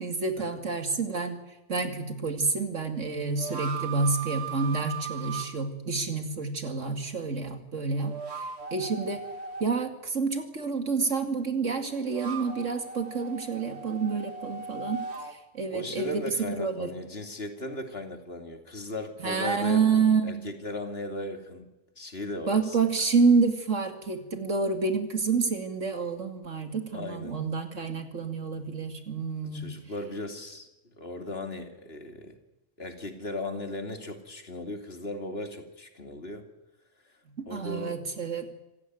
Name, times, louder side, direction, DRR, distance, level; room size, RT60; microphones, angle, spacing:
voice 1, 0.0-1.4 1.7-8.1 8.7-9.2 9.6-15.0 15.5-16.2 16.5-16.9 19.2-20.5 22.5-29.7 37.4-38.5, right 4 dB, 80° right, 6 dB, 2.8 m, -28 dB
sound 1, 0.9-1.0 3.0-5.5 7.9-9.7 11.7-15.4, right 5 dB, 60° right, 2.3 m, -38 dB
voice 2, 15.7-21.7 22.0-23.0 26.9-27.4 29.4-32.4 32.8-36.4 37.0-37.1 37.5-38.0, left 2 dB, 55° left, 5 dB, 2.8 m, -37 dB
26.5 x 15.5 x 9.4 m, 0.99 s
omnidirectional pair, 1.3 m